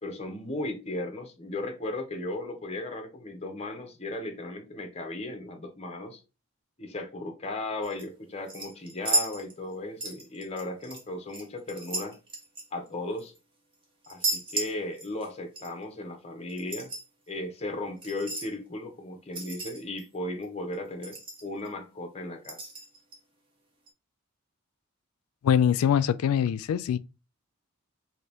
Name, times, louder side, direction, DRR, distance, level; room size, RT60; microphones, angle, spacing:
voice 1, 0.0-6.2 6.8-12.2 12.7-13.3 14.1-16.9 17.3-22.6, left 2 dB, 30° left, 0.7 m, -36 dB
sound 1, 7.8-8.1 8.5-9.7 10.0-11.0 11.3-13.4 14.0-15.3 15.6-15.7 16.5-17.0 18.0-18.5 19.3-20.0 20.4-20.5 20.7-20.8 21.0-21.7 22.4-23.2 23.9-24.0, right 2 dB, 25° right, 0.7 m, -33 dB
voice 2, 25.4-27.0, left 8 dB, 90° left, 0.3 m, -23 dB
2.8 x 2.6 x 3.3 m
head